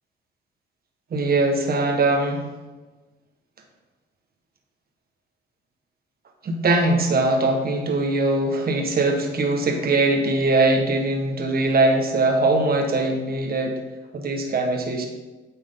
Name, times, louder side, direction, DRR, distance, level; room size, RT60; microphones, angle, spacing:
voice 1, 1.1-2.5 6.4-13.8 14.1-15.1, right 2 dB, 50° right, 3 dB, 1.6 m, -21 dB
9.2 x 6.6 x 3.9 m, 1.2 s
cardioid pair, 90°, 20 cm